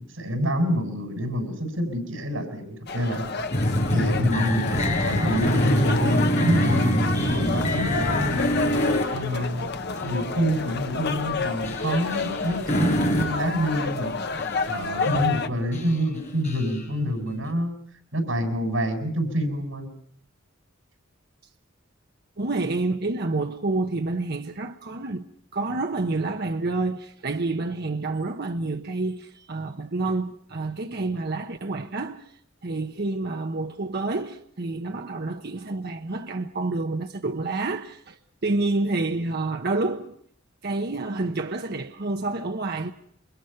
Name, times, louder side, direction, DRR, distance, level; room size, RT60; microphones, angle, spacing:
voice 1, 0.0-3.3 3.9-8.5 9.1-9.7 10.0-14.2 14.7-17.8 18.1-19.9, equal, 80° right, 7.4 m, -27 dB
sound 1, 2.9-15.5, left 4 dB, 60° left, 1.2 m, -30 dB
sound 2, 3.5-9.6 10.0-10.1 10.5-10.7 11.6-13.4 13.9-14.0 14.4-14.7 15.0-15.5 15.7-16.8, equal, 40° left, 5.3 m, -25 dB
voice 2, 22.4-25.3 25.5-32.3 32.6-40.2 40.6-42.9, right 2 dB, 55° right, 1.0 m, -28 dB
28.5 x 25.5 x 5.8 m
head